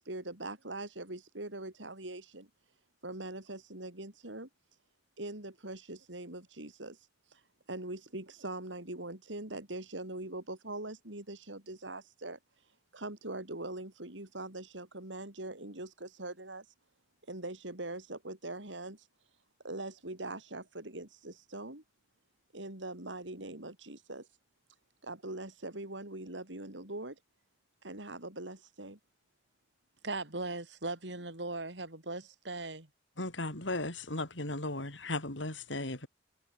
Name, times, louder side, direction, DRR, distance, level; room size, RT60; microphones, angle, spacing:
voice 1, 0.0-2.5 3.0-4.5 5.2-7.0 7.3-7.4 7.7-12.4 12.9-16.6 17.3-19.0 19.6-21.8 22.5-24.3 25.0-27.2 27.8-29.0, right 2 dB, 85° right, 5.0 m, -42 dB
voice 2, 30.0-32.9, right 2 dB, 70° right, 5.1 m, -38 dB
voice 3, 33.2-36.1, left 2 dB, 85° left, 5.6 m, -36 dB
head